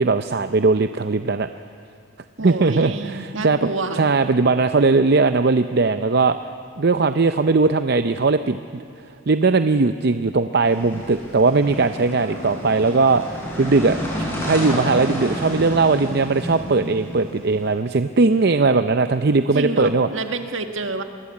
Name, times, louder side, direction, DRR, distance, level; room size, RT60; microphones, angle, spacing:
voice 1, 0.0-1.5 2.4-3.7 3.9-6.4 6.8-8.8 9.3-20.1, right 3 dB, 50° right, 10 dB, 0.6 m, -19 dB
voice 2, 2.4-4.0 19.5-21.0, right 3 dB, 70° right, 6 dB, 1.8 m, -28 dB
sound 1, 10.6-17.6, equal, 10° left, 7.0 m, -30 dB
sound 2, 12.1-14.7, left 4 dB, 55° left, 2.3 m, -44 dB
27.5 x 21.5 x 8.5 m, 2.5 s
head